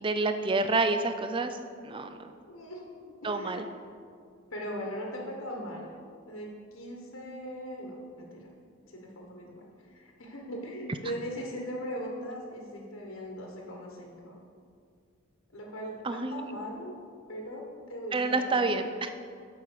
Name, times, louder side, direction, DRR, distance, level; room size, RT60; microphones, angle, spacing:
voice 1, 0.0-1.6 1.8-2.2 3.2-3.6 16.0-16.4 18.1-19.1, right 3 dB, 25° right, 8 dB, 0.4 m, -28 dB
voice 2, 2.5-3.7 4.5-6.0 6.2-8.5 8.9-14.4 15.5-17.0 17.3-18.8, equal, 70° left, -1 dB, 1.3 m, -40 dB
7.8 x 5.5 x 6.7 m, 2.2 s
head